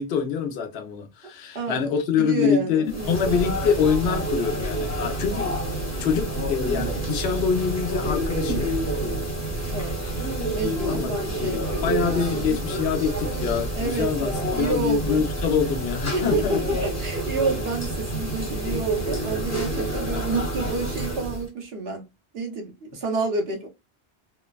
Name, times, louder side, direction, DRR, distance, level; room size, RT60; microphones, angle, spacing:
voice 1, 0.0-5.5 6.0-8.7 10.9-11.2 11.8-16.6 19.8-20.0, left 7 dB, 65° left, 0.9 m, -25 dB
voice 2, 1.5-1.9 2.2-3.5 8.9-10.0 10.5-12.6 13.7-15.2 16.1-22.0 22.3-23.7, right 3 dB, 65° right, 1.0 m, -29 dB
sound 1, 2.9-21.5, right 1 dB, 15° left, 0.7 m, -28 dB
3.2 x 2.1 x 2.2 m
omnidirectional pair, 1.1 m